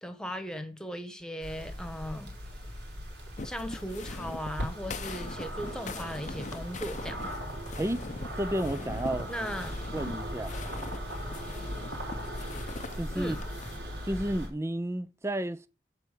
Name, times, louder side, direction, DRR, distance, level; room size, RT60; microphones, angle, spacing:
voice 1, 0.0-2.3 3.4-7.3 9.3-9.8 13.1-13.4, equal, 5° left, 1.4 m, -37 dB
sound 1, 1.4-14.5, equal, 70° right, 4.7 m, -38 dB
sound 2, 3.4-13.8, left 3 dB, 40° left, 0.7 m, -42 dB
voice 2, 8.4-9.3 9.9-10.5 13.0-13.4 14.1-15.7, right 1 dB, 15° right, 0.5 m, -31 dB
12.0 x 4.5 x 8.4 m
head